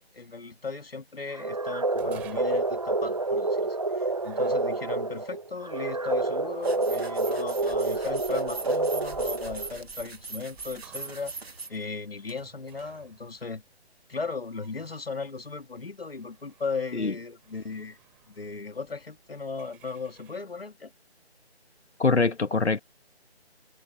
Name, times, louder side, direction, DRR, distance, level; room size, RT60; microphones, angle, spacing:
voice 1, 0.0-13.6 14.1-18.0 18.3-20.9, left 4 dB, 60° left, 2.5 m, -37 dB
sound 1, 1.3-9.8, right 2 dB, 35° right, 1.5 m, -28 dB
sound 2, 1.9-20.4, right 16 dB, 5° right, 5.5 m, -57 dB
sound 3, 6.6-11.7, right 3 dB, 65° right, 2.1 m, -41 dB
voice 2, 22.0-22.8, left 3 dB, 90° left, 1.8 m, -23 dB
figure-of-eight pair, 175°, 33 cm